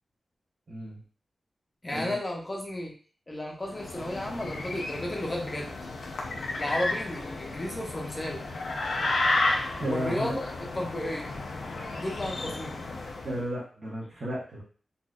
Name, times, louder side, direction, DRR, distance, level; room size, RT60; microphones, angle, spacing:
voice 1, 0.7-1.0 1.9-2.2 9.8-10.4 13.2-14.6, equal, 45° right, -7 dB, 1.0 m, -33 dB
voice 2, 1.8-2.9 3.3-5.7 6.6-8.4 9.9-11.3 12.0-12.8, left 1 dB, 20° left, 0 dB, 0.7 m, -33 dB
sound 1, 3.7-13.4, left 2 dB, 80° left, 0.6 m, -32 dB
4.0 x 2.5 x 2.4 m, 0.40 s
wide cardioid pair, 170°, 0 cm